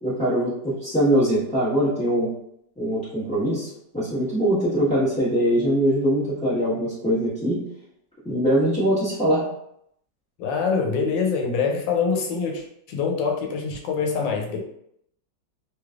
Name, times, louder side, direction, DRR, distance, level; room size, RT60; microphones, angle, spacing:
voice 1, 0.0-2.3 2.8-3.7 3.9-7.6 8.2-9.4, equal, 5° left, -13 dB, 1.0 m, -22 dB
voice 2, 10.4-14.6, left 5 dB, 80° left, 2 dB, 1.4 m, -25 dB
3.2 x 3.1 x 2.4 m, 0.73 s
omnidirectional pair, 2.0 m